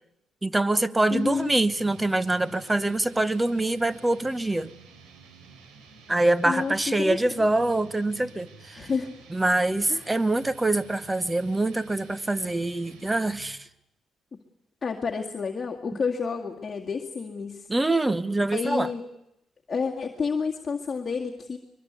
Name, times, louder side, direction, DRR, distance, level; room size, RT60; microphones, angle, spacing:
voice 1, 0.4-4.7 6.1-8.9 9.3-13.6 17.7-18.9, right 2 dB, 15° right, 1.0 m, -25 dB
voice 2, 1.1-1.5 6.4-7.4 8.7-9.2 9.9-10.1 14.8-17.7 18.5-19.0 19.7-21.6, left 5 dB, 35° left, 2.1 m, -30 dB
sound 1, 1.1-13.6, right 4 dB, 85° right, 3.4 m, -50 dB
23.0 x 22.5 x 8.3 m
cardioid pair, 90°, 0 cm